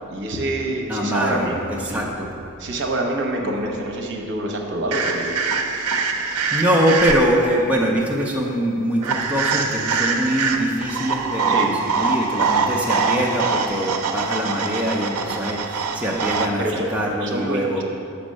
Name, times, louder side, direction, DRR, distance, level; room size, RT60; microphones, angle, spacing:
voice 1, 0.1-2.0 2.6-5.4 11.5-11.7 16.6-16.9 17.2-17.8, right 1 dB, 55° right, 2 dB, 0.8 m, -26 dB
voice 2, 0.9-2.3 6.5-17.8, equal, 5° right, -3 dB, 0.5 m, -23 dB
sound 1, 4.9-7.5 9.0-16.5, right 4 dB, 80° right, 0.5 m, -23 dB
6.1 x 4.3 x 6.3 m, 2.7 s
head